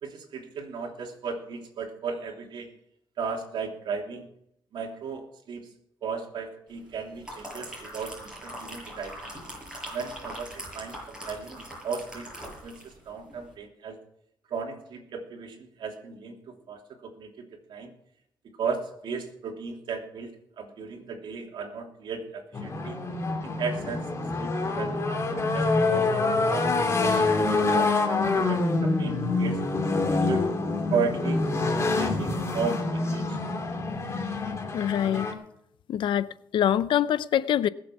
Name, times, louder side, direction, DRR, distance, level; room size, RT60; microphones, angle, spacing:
voice 1, 0.0-2.7 3.2-4.3 4.7-5.7 6.0-9.3 9.9-14.0 14.5-17.9 18.6-23.0 23.4-24.1 24.4-25.0 25.3-27.9 28.3-29.6 30.1-30.5 30.9-31.4 31.9-33.4, right 5 dB, 70° right, 3.1 m, -35 dB
sound 1, 6.9-13.0 13.3-13.5, equal, 10° right, 8.0 m, -41 dB
sound 2, 22.5-35.3, left 3 dB, 35° left, 2.9 m, -26 dB
voice 2, 34.7-35.3 35.9-37.7, left 10 dB, 75° left, 0.6 m, -25 dB
20.5 x 7.7 x 6.0 m
cardioid pair, 95°, 8 cm